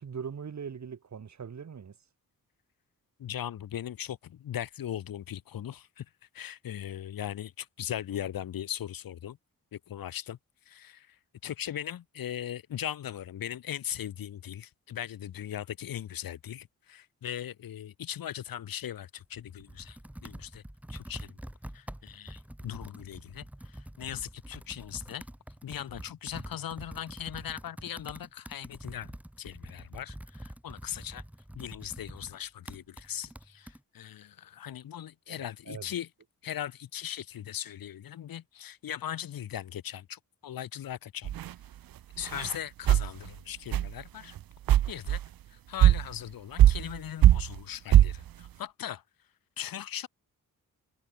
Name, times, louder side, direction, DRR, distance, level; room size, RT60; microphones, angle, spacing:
voice 1, 0.0-1.9 35.3-35.9, right 6 dB, 55° right, 4.3 m, -41 dB
voice 2, 3.2-6.1 6.3-9.4 9.7-10.4 10.7-20.6 20.9-21.4 21.7-25.3 25.6-31.2 31.5-36.1 36.4-41.3 42.2-44.4 44.9-45.2 45.5-49.0 49.6-50.1, left 10 dB, 90° left, 2.7 m, -39 dB
Computer keyboard, 19.2-33.8, right 1 dB, 5° right, 3.8 m, -46 dB
sound 1, 41.2-41.5 42.2-42.5 42.9-43.1 43.7-43.9 44.4-44.5 44.7-45.2 45.8-46.0 46.6-47.0 47.2-47.6 47.9-48.2, right 12 dB, 85° right, 1.0 m, -20 dB
cardioid pair, 100°, 34 cm